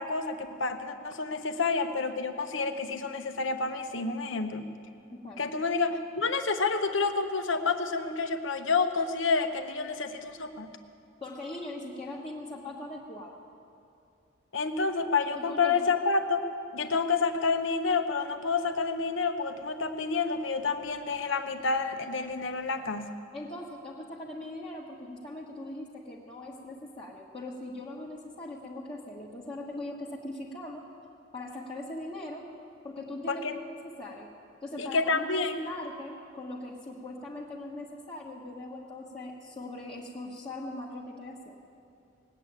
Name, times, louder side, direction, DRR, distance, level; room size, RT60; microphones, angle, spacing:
voice 1, 0.0-4.7 5.4-10.7 14.5-16.4 16.7-23.2 33.3-33.5 34.8-35.6, left 4 dB, 70° left, 7 dB, 1.0 m, -29 dB
voice 2, 5.1-5.4 11.2-13.4 15.3-15.8 23.3-30.9 31.3-32.5 32.8-34.3 34.6-41.6, left 1 dB, 25° left, -6 dB, 1.3 m, -40 dB
19.5 x 8.2 x 8.8 m, 2.5 s
head